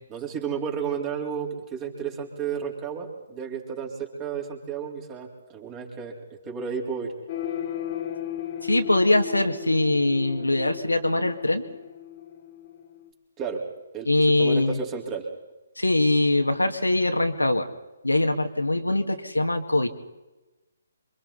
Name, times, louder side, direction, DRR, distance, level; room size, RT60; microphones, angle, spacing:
voice 1, 0.1-7.1 13.4-13.6 13.9-15.3, right 6 dB, 20° right, 1 dB, 4.1 m, -32 dB
sound 1, 7.3-13.1, left 10 dB, 35° left, 2.7 m, -36 dB
voice 2, 8.6-11.6 14.0-14.8 15.8-17.7 18.0-19.9, left 2 dB, 80° left, 5 dB, 2.2 m, -22 dB
28.0 x 25.0 x 4.2 m, 1.0 s
figure-of-eight pair, 135°, 0 cm